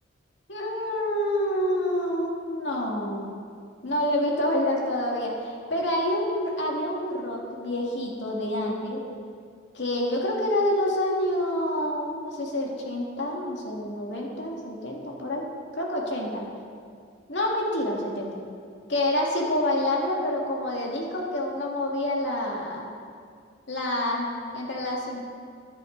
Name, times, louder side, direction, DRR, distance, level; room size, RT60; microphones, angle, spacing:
voice 1, 0.5-3.3 3.8-9.0 9.7-15.4 15.8-16.5 17.3-18.3 18.9-22.9 23.7-25.3, left 1 dB, 60° left, -2 dB, 2.2 m, -27 dB
14.5 x 10.0 x 4.0 m, 2.2 s
head